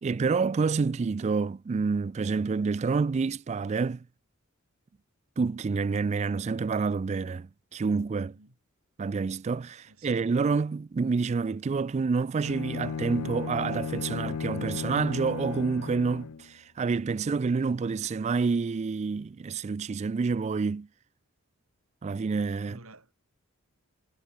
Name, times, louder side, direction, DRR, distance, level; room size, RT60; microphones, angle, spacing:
voice 1, 0.0-4.0 5.4-8.4 9.0-20.9 22.0-22.8, right 4 dB, 30° right, 0.3 m, -28 dB
voice 2, 9.9-10.2 22.6-23.1, right 2 dB, 85° right, 5.2 m, -51 dB
Bowed string instrument, 12.4-16.5, left 6 dB, 90° left, 0.4 m, -35 dB
head